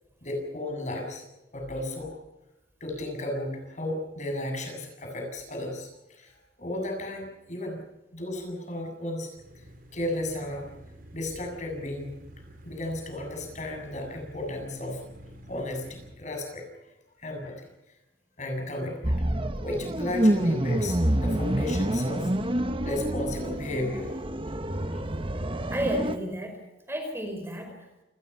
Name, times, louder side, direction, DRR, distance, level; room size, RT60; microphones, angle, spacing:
voice 1, 0.2-1.2 1.5-2.1 2.8-6.3 6.6-7.8 8.1-9.3 9.9-10.7 11.1-12.2 12.6-15.1 15.5-16.7 17.2-17.6 18.4-19.2 19.6-22.3 22.8-24.2 24.9-25.1, left 1 dB, 40° left, 3 dB, 7.7 m, -34 dB
sound 1, 9.4-16.1, right 1 dB, 50° right, 5.4 m, -49 dB
sound 2, 19.0-26.2, right 1 dB, 30° right, 1.3 m, -27 dB
voice 2, 25.7-28.0, right 1 dB, 15° right, 4 dB, 4.9 m, -33 dB
28.5 x 21.5 x 5.7 m, 0.97 s
head